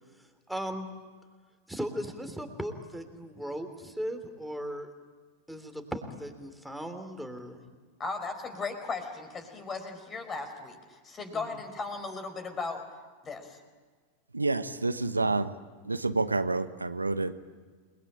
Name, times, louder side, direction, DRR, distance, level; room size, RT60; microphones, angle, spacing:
voice 1, 0.5-0.9 1.7-4.9 5.5-7.6 11.3-11.5, equal, ahead, 5 dB, 3.3 m, -37 dB
voice 2, 8.0-12.8 13.2-13.6, left 4 dB, 20° left, 7 dB, 4.5 m, -37 dB
voice 3, 14.3-15.5 15.8-17.3, right 3 dB, 80° right, 11 dB, 1.1 m, -28 dB
29.0 x 21.5 x 8.9 m, 1.5 s
figure-of-eight pair, 90°, 0 cm